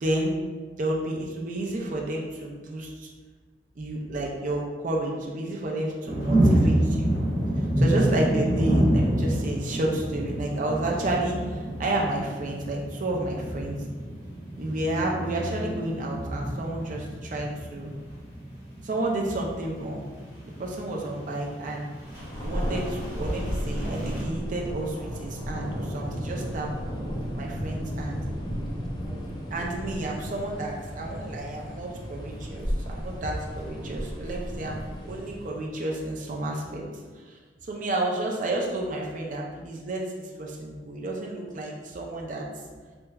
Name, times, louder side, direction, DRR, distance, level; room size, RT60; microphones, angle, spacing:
voice 1, 0.0-0.3 0.8-3.1 3.8-7.1 7.8-13.8 14.6-17.9 18.8-20.0 20.4-21.9 22.1-26.7 27.4-28.2 29.5-34.8 35.1-36.8 37.2-37.4 37.6-42.5, right 1 dB, 45° right, -1 dB, 0.4 m, -31 dB
sound 1, 6.0-24.2, right 1 dB, 20° right, 1.1 m, -28 dB
Thunder, 22.0-35.7, equal, 25° left, 0.5 m, -34 dB
3.3 x 2.9 x 2.3 m, 1.5 s
head